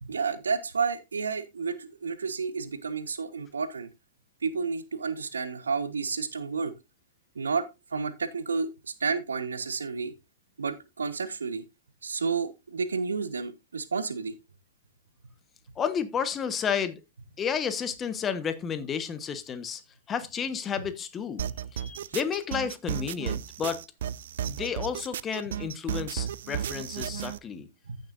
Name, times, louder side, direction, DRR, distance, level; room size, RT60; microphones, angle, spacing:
voice 1, 0.0-3.9 4.4-6.7 7.3-8.7 9.0-10.1 10.6-11.6 12.0-14.3 27.1-27.2 27.9-28.0, right 5 dB, 80° right, 1.2 m, -31 dB
voice 2, 15.8-17.0 17.4-19.8 20.1-21.5 21.7-23.8 24.5-27.7, left 7 dB, 25° left, 1.3 m, -31 dB
sound 1, 21.4-27.4, right 10 dB, 65° right, 0.5 m, -34 dB
15.0 x 6.6 x 2.6 m
figure-of-eight pair, 105°, 0 cm